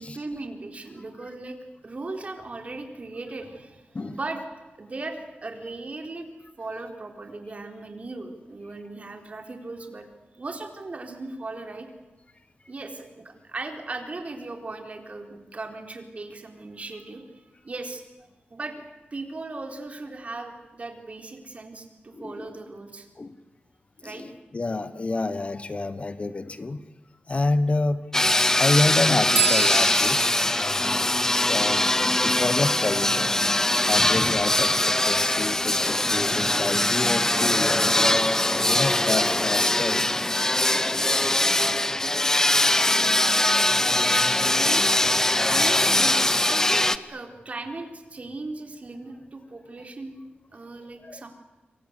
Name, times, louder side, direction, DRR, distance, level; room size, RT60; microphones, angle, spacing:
voice 1, 0.0-1.6 1.8-4.4 4.8-6.3 6.6-10.1 10.3-11.9 12.7-18.0 18.5-18.8 19.1-23.1 24.0-24.2 41.0-41.3 42.6-44.8 45.5-50.2 50.5-51.3, right 3 dB, 40° right, 4 dB, 4.1 m, -38 dB
voice 2, 22.1-22.5 23.2-23.4 24.0-26.8 27.3-28.0 28.3-31.2 31.5-31.9 32.2-33.3 33.8-41.5 43.2-43.9 51.0-51.2, left 3 dB, 35° left, 12 dB, 1.2 m, -29 dB
sound 1, 28.1-47.0, left 1 dB, 15° left, 1.0 m, -22 dB
sound 2, 29.3-32.9, right 5 dB, 60° right, 1.6 m, -31 dB
28.5 x 23.5 x 8.3 m, 1.1 s
wide cardioid pair, 110°, 4 cm